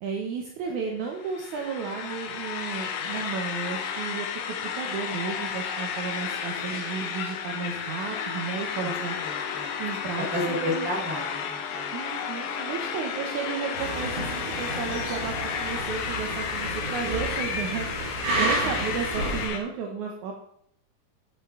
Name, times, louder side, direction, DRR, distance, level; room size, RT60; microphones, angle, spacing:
voice 1, 0.0-9.2 9.8-10.9 11.9-20.3, right 6 dB, 70° right, 1 dB, 2.1 m, -33 dB
sound 1, 1.1-19.6, left 7 dB, 80° left, 2.5 m, -33 dB
voice 2, 9.0-9.7 10.3-11.9 18.3-18.7, equal, 5° right, -4 dB, 3.2 m, -32 dB
sound 2, 13.8-19.5, right 1 dB, 50° right, 4.7 m, -31 dB
8.8 x 8.0 x 3.7 m, 0.68 s
omnidirectional pair, 4.0 m